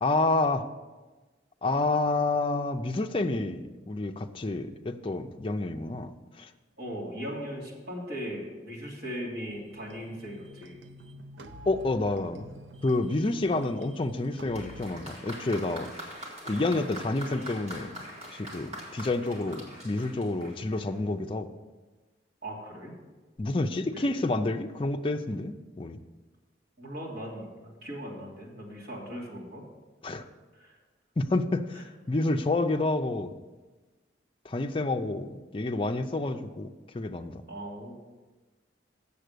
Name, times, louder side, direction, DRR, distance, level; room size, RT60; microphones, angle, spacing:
voice 1, 0.0-0.7 1.6-6.1 6.4-6.5 11.7-12.5 12.8-15.9 16.5-18.0 18.3-21.5 23.4-26.0 30.0-30.3 31.2-33.3 34.4-36.7 36.9-37.4, left 2 dB, 30° left, 6 dB, 0.5 m, -29 dB
voice 2, 6.8-10.8 22.4-22.9 23.9-24.1 26.8-29.6 30.5-30.8 37.5-37.9, equal, 60° right, -4 dB, 2.8 m, -38 dB
sound 1, 9.5-14.9, equal, 75° right, 0.6 m, -47 dB
Applause, 14.5-21.0, equal, 35° right, 2.0 m, -43 dB
7.8 x 7.0 x 6.7 m, 1.2 s
head